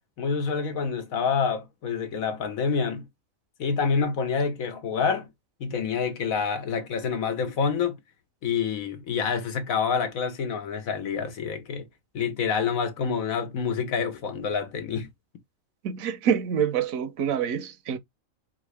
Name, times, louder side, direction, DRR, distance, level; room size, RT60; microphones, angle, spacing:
voice 1, 0.2-3.0 3.6-5.3 5.6-8.0 8.4-11.9 12.1-15.1, left 6 dB, 85° left, 1.5 m, -27 dB
voice 2, 15.8-18.0, right 8 dB, 80° right, 1.1 m, -26 dB
3.9 x 3.7 x 3.3 m
omnidirectional pair, 1.4 m